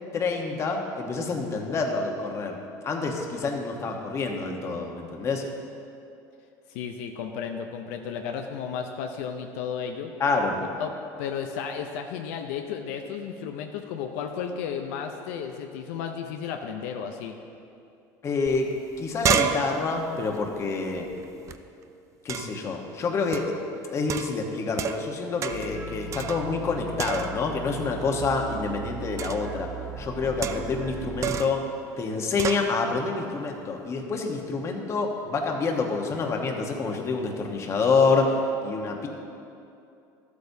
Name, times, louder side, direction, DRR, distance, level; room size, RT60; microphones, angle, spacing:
voice 1, 0.1-2.6 2.8-5.4 10.2-10.5 18.2-18.7 19.0-21.1 22.2-23.4 23.9-29.7 30.0-31.6 32.0-38.3 38.6-39.1, left 4 dB, 35° left, 2 dB, 1.1 m, -27 dB
voice 2, 6.7-10.1 10.8-10.9 11.2-17.4, left 7 dB, 85° left, 4 dB, 0.6 m, -33 dB
sound 1, 18.5-18.6 18.8-21.6 22.3-22.7 23.3-23.6 24.1-25.1 25.4-25.8 26.1-26.7 27.0-27.6 29.2-29.5 30.4-30.8 31.2-31.6 32.4-32.7, right 8 dB, 40° right, 0.4 m, -30 dB
sound 2, 25.5-31.4, right 4 dB, 25° right, 1.7 m, -38 dB
12.5 x 8.2 x 2.7 m, 2.6 s
supercardioid pair, 115°, 8 cm